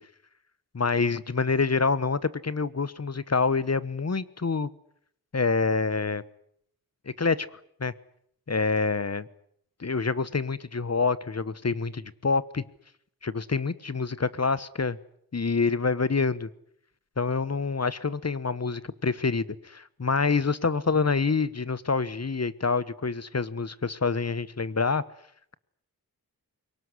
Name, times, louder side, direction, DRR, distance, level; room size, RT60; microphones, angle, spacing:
voice 1, 0.7-4.7 5.3-6.2 7.2-7.5 7.8-7.9 8.5-9.3 9.8-12.6 13.2-15.0 15.3-16.5 17.2-25.0, left 4 dB, 40° left, 1.1 m, -26 dB
23.0 x 19.0 x 9.7 m
wide cardioid pair, 65°, 38 cm